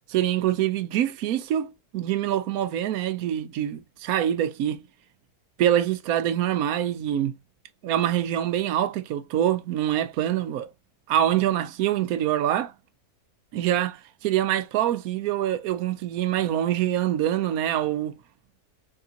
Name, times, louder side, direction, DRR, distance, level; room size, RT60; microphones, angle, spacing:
voice 1, 0.1-4.8 5.6-7.3 7.8-10.7 11.1-12.7 13.5-18.1, right 11 dB, 80° right, 1.0 m, -25 dB
3.8 x 3.5 x 2.7 m
omnidirectional pair, 1.5 m